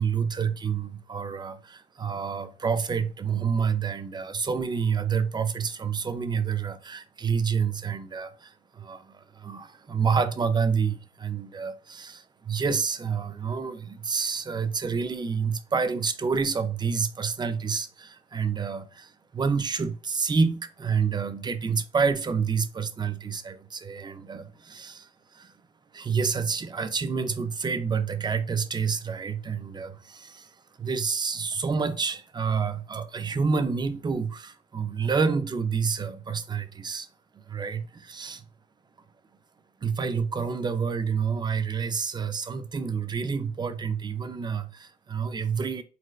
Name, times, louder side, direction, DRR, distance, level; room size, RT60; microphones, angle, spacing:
voice 1, 0.0-25.5 25.9-37.1 37.3-38.4 39.8-45.8, right 5 dB, 20° right, 0.3 m, -28 dB
4.0 x 2.1 x 2.3 m
cardioid pair, 90°, 20 cm